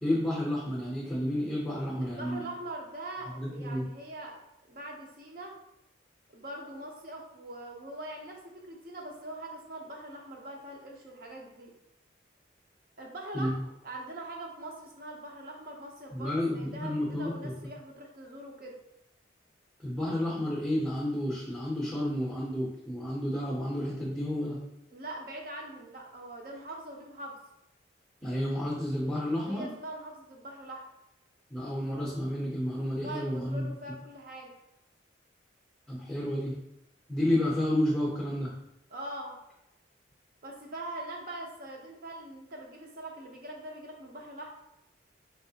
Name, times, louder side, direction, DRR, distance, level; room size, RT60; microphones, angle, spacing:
voice 1, 0.0-2.4 3.4-3.9 13.3-13.5 16.1-17.5 19.8-24.6 28.2-29.7 31.5-33.7 35.9-36.6 37.1-38.5, left 1 dB, 5° left, -5 dB, 0.6 m, -31 dB
voice 2, 2.0-4.4 4.7-5.6 6.3-11.7 13.0-18.8 24.9-27.4 29.4-30.8 33.0-34.5 38.9-39.4 40.4-44.5, right 1 dB, 50° right, 0 dB, 0.7 m, -42 dB
4.2 x 3.1 x 2.7 m, 0.83 s
head